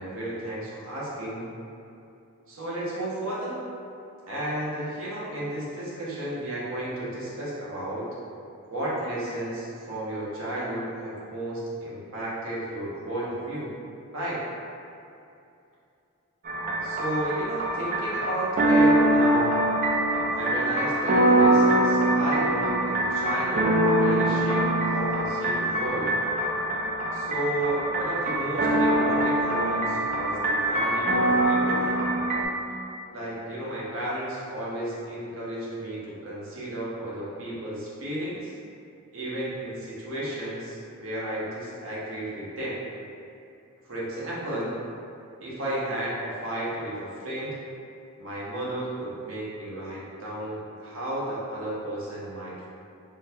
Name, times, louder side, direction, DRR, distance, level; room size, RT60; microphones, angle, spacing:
voice 1, 0.0-1.5 2.5-3.6 4.3-8.1 8.7-13.7 14.1-14.4 16.8-19.5 20.3-26.2 27.1-32.0 33.1-38.5 39.1-42.8 43.9-44.8 45.4-47.6 48.2-52.7, right 1 dB, 60° right, -7 dB, 0.8 m, -33 dB
sound 1, 16.5-32.4, right 1 dB, 35° right, 0.3 m, -23 dB
3.8 x 2.2 x 2.7 m, 2.6 s
head